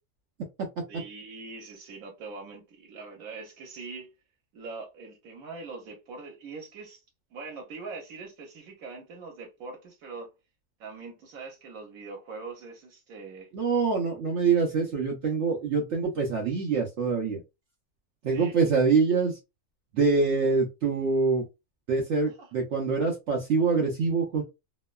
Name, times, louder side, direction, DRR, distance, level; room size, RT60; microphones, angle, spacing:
voice 1, 0.9-4.1 4.5-7.0 7.3-10.3 10.8-13.5 18.3-18.6 22.2-22.5, right 4 dB, 85° right, 1.2 m, -42 dB
voice 2, 13.5-17.4 18.2-19.4 19.9-21.4 21.9-24.4, right 4 dB, 65° right, 0.9 m, -25 dB
2.9 x 2.1 x 2.2 m
omnidirectional pair, 1.5 m